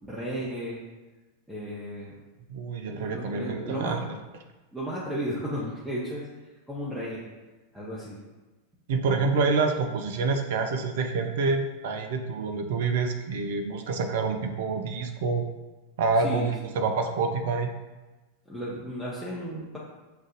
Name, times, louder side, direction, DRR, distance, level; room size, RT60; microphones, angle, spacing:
voice 1, 0.0-0.8 1.5-2.1 2.9-4.0 4.7-6.3 6.7-7.2 7.7-8.2 16.2-16.7 18.5-19.8, equal, 5° right, -8 dB, 0.8 m, -34 dB
voice 2, 2.5-4.0 8.9-15.5 16.0-17.7, right 4 dB, 55° right, 5 dB, 0.5 m, -27 dB
7.0 x 2.5 x 2.5 m, 1.2 s
figure-of-eight pair, 90°, 0 cm